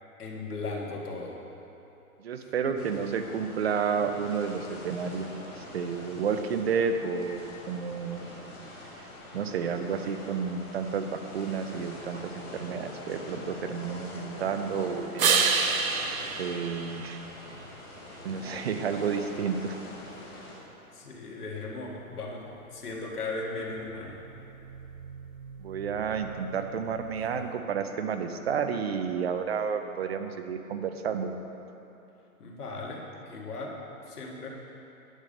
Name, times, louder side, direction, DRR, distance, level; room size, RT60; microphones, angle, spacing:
voice 1, 0.2-1.4 2.4-2.8 18.3-18.6 20.2-20.3 20.9-24.2 27.3-27.4 32.4-34.5, left 3 dB, 85° left, -1 dB, 2.0 m, -37 dB
voice 2, 2.2-8.7 9.0-9.1 9.3-11.1 11.3-15.5 16.4-17.2 18.2-19.8 25.6-31.4, right 6 dB, 45° right, 7 dB, 0.6 m, -31 dB
sound 1, 2.8-20.5, left 1 dB, 15° left, 0.8 m, -44 dB
sound 2, 15.2-17.7 23.5-27.5, right 5 dB, 65° right, 0.9 m, -31 dB
9.7 x 7.0 x 5.2 m, 3.0 s
hypercardioid pair, 160°, 44 cm